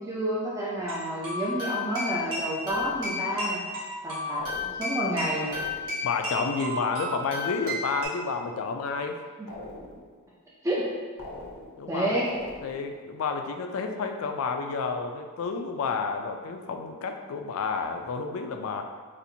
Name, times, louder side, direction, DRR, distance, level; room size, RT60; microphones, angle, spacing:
voice 1, 0.0-3.6 4.0-5.5 9.4-9.5 10.6-10.9 11.9-12.3, right 1 dB, 15° right, -6 dB, 0.4 m, -29 dB
sound 1, 0.8-8.1, left 2 dB, 80° right, 1.4 m, -33 dB
sound 2, 2.6-3.4 4.4-5.1 5.4-6.1 9.5-10.2 11.2-11.9 12.3-13.0, left 1 dB, 90° left, 0.8 m, -42 dB
voice 2, 6.0-9.2 11.8-12.2 12.6-18.9, left 5 dB, 70° left, 5 dB, 0.3 m, -30 dB
4.1 x 2.5 x 2.7 m, 1.4 s
head